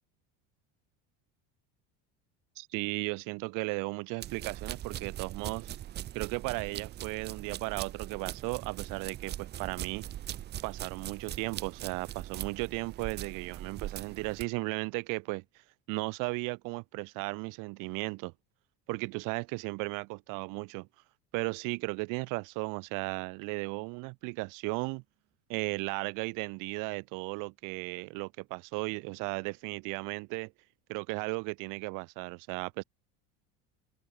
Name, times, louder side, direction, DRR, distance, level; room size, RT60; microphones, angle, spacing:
voice 1, 2.6-5.7 6.1-10.1 10.6-15.4 15.9-18.3 18.9-20.9 21.3-25.0 25.5-30.5 30.9-32.8, right 29 dB, 65° right, 1.5 m, -35 dB
sound 1, 4.2-14.5, right 12 dB, 30° right, 0.7 m, -41 dB
open air
cardioid pair, 150°, 34 cm